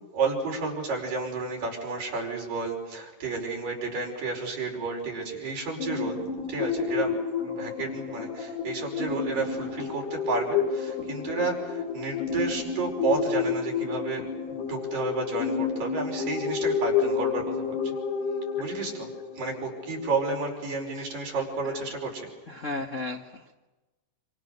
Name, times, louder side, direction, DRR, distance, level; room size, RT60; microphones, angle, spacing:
voice 1, 0.1-18.0 18.6-19.1 19.4-22.3, right 3 dB, 80° right, 0 dB, 7.1 m, -31 dB
sound 1, 5.8-20.2, left 6 dB, 70° left, 3.9 m, -30 dB
voice 2, 22.5-23.5, left 2 dB, 50° left, 3 dB, 0.9 m, -34 dB
27.5 x 27.0 x 6.7 m, 1.1 s
omnidirectional pair, 3.8 m